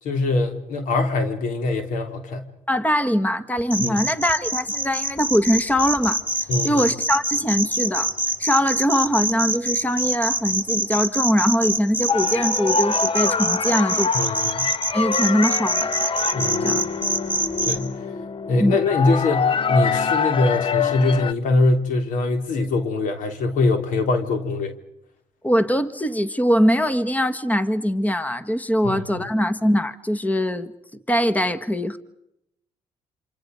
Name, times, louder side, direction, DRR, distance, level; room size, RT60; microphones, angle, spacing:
voice 1, 0.0-2.4 3.8-4.1 6.5-6.9 14.1-14.7 16.3-16.8 17.6-17.9 18.5-24.8 28.8-29.0, left 2 dB, 85° left, 7 dB, 3.5 m, -23 dB
voice 2, 2.7-6.2 6.6-8.1 8.4-14.1 14.9-15.9 16.6-16.8 18.6-18.8 25.4-32.0, equal, 10° left, 12 dB, 1.7 m, -22 dB
sound 1, 3.7-17.7, right 1 dB, 10° right, 5.5 m, -24 dB
sound 2, 12.1-21.3, left 6 dB, 40° left, 0.9 m, -25 dB
28.0 x 27.0 x 5.3 m, 0.82 s
cardioid pair, 75°, 13 cm